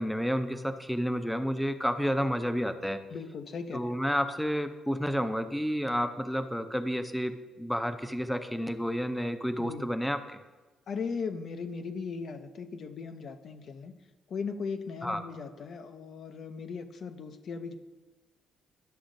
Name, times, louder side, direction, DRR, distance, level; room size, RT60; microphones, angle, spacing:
voice 1, 0.0-3.0 3.7-10.4 15.0-15.2, equal, 5° left, 9 dB, 0.5 m, -30 dB
voice 2, 3.1-4.0 9.6-9.9 10.9-14.0 14.3-17.8, left 5 dB, 60° left, 9 dB, 0.5 m, -38 dB
11.5 x 6.1 x 2.6 m, 1.2 s
cardioid pair, 90°, 0 cm